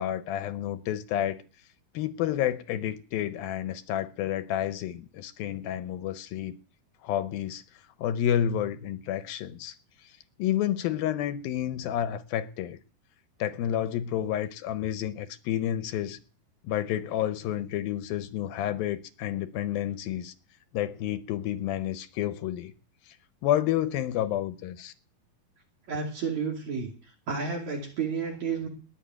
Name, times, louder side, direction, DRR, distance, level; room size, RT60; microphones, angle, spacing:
voice 1, 0.0-1.4 1.9-6.6 7.0-7.6 8.0-9.8 10.4-12.8 13.4-16.2 16.6-20.3 20.7-22.7 23.4-24.9, left 11 dB, 80° left, 2.6 m, -30 dB
voice 2, 25.9-26.9 27.3-28.7, right 5 dB, 50° right, 3.9 m, -31 dB
20.0 x 6.9 x 9.2 m
omnidirectional pair, 4.3 m